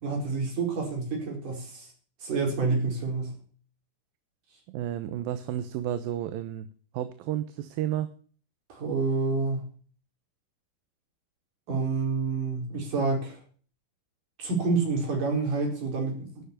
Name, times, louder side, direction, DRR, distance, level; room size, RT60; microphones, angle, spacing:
voice 1, 0.0-1.9 2.2-3.4 8.7-9.7 11.7-13.4 14.4-16.5, right 4 dB, 65° right, 2 dB, 6.0 m, -28 dB
voice 2, 4.7-6.7 6.9-8.1, right 11 dB, 80° right, 11 dB, 2.6 m, -31 dB
12.0 x 10.5 x 6.8 m, 0.43 s
omnidirectional pair, 4.1 m